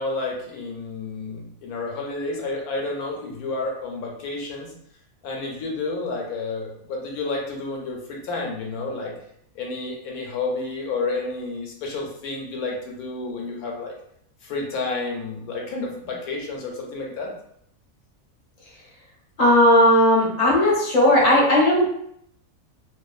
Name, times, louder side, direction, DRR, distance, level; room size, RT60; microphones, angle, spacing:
voice 1, 0.0-4.7 5.2-9.1 9.5-13.9 14.4-17.3, left 3 dB, 75° left, 0 dB, 1.1 m, -30 dB
voice 2, 19.4-21.9, left 1 dB, 35° left, -4 dB, 0.7 m, -16 dB
2.6 x 2.4 x 2.4 m, 0.71 s
omnidirectional pair, 1.6 m